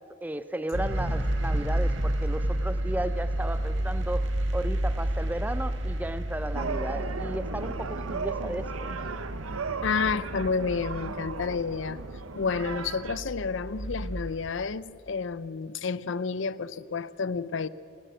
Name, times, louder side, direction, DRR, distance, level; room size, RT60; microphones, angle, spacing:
voice 1, 0.2-8.9, right 1 dB, 10° right, 0.5 m, -34 dB
sound 1, 0.7-14.5, right 1 dB, 65° right, 1.6 m, -31 dB
sound 2, 6.5-13.2, right 4 dB, 90° right, 0.9 m, -36 dB
voice 2, 9.8-12.0 12.3-17.7, left 5 dB, 65° left, 0.5 m, -30 dB
28.5 x 12.0 x 7.7 m
head